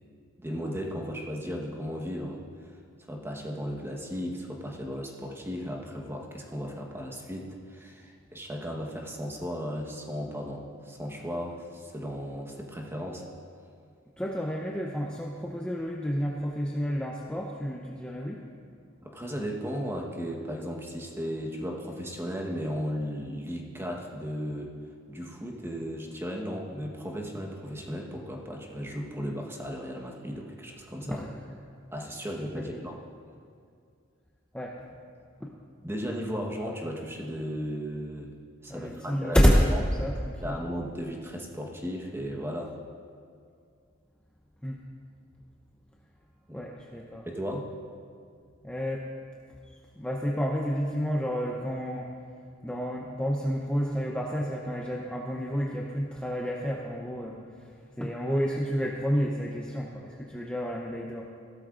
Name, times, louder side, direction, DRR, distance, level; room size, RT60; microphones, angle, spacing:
voice 1, 0.4-2.4 3.1-13.2 19.0-24.7 25.1-31.2 31.9-33.0 35.8-38.3 38.6-39.4 39.7-39.8 40.4-42.8 46.5-46.7 47.3-47.7, equal, 10° right, 0 dB, 1.2 m, -35 dB
voice 2, 14.2-18.4 31.1-31.3 32.5-32.8 34.5-34.8 35.4-35.5 38.7-40.5 44.6-44.8 46.5-47.3 48.6-49.0 49.7-52.1 52.6-57.7 58.0-61.2, equal, 5° left, -2 dB, 0.6 m, -29 dB
16.0 x 13.0 x 2.5 m, 2.3 s
head